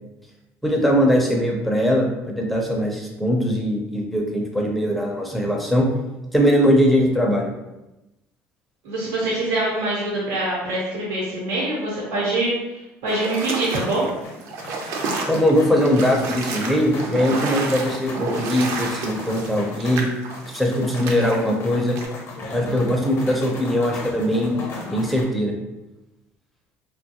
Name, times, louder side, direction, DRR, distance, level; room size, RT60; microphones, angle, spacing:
voice 1, 0.6-5.9 6.3-7.5 15.3-20.1 20.5-22.0 22.5-24.6 24.9-25.5, equal, ahead, -1 dB, 0.4 m, -21 dB
voice 2, 8.8-12.5 13.0-14.1, right 2 dB, 85° right, -6 dB, 1.0 m, -24 dB
sound 1, 13.1-21.4 22.0-22.1, right 3 dB, 60° right, 0.4 m, -30 dB
sound 2, 14.2-25.2, left 2 dB, 50° left, 0.7 m, -37 dB
2.9 x 2.2 x 2.8 m, 0.97 s
cardioid pair, 145°, 5 cm